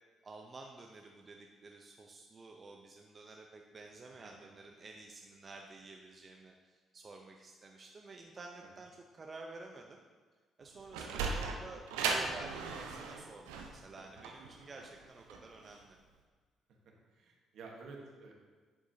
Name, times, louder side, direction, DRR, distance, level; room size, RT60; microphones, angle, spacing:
voice 1, 0.2-10.0 10.6-16.0, right 3 dB, 40° right, 2 dB, 0.7 m, -51 dB
Sliding door, 10.6-15.8, right 4 dB, 85° right, 0.6 m, -37 dB
voice 2, 11.0-11.3 16.8-18.3, right 3 dB, 70° right, 0 dB, 1.2 m, -52 dB
10.5 x 4.8 x 2.8 m, 1.5 s
hypercardioid pair, 55°, 0 cm